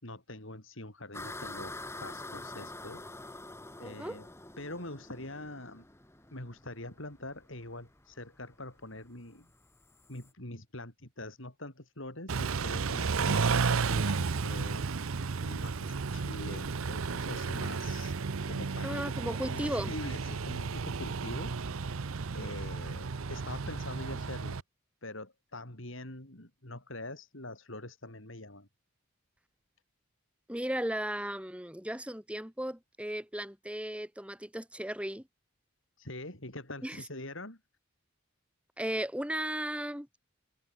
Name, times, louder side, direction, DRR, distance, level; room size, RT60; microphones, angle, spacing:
voice 1, 0.0-1.7 2.0-3.1 3.8-4.3 4.6-5.8 6.3-9.5 10.1-14.9 15.4-18.1 18.5-19.1 19.5-21.9 22.3-24.6 25.0-28.7 36.0-37.6, left 2 dB, 65° left, 5.3 m, -44 dB
sound 1, 1.1-10.3, left 2 dB, 10° left, 2.4 m, -46 dB
voice 2, 3.8-4.2 18.8-19.9 30.5-35.2 36.8-37.0 38.8-40.1, right 1 dB, 5° right, 2.7 m, -35 dB
Car / Idling / Accelerating revving vroom, 12.3-24.6, right 4 dB, 75° right, 0.7 m, -33 dB
head